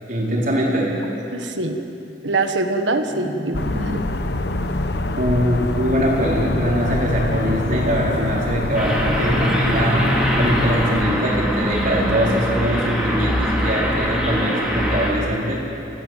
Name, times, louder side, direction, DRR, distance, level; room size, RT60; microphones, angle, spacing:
voice 1, 0.1-0.9 5.2-15.7, equal, 45° right, -4 dB, 4.4 m, -22 dB
voice 2, 1.3-1.8 2.2-4.0, right 2 dB, 75° right, 7 dB, 1.6 m, -23 dB
sound 1, 3.0-12.9, left 1 dB, 80° left, 7.4 m, -36 dB
sound 2, 3.5-11.0, left 1 dB, 60° left, 1.0 m, -24 dB
sound 3, 8.7-15.1, equal, 5° right, 3.1 m, -23 dB
25.0 x 17.0 x 7.6 m, 2.9 s
head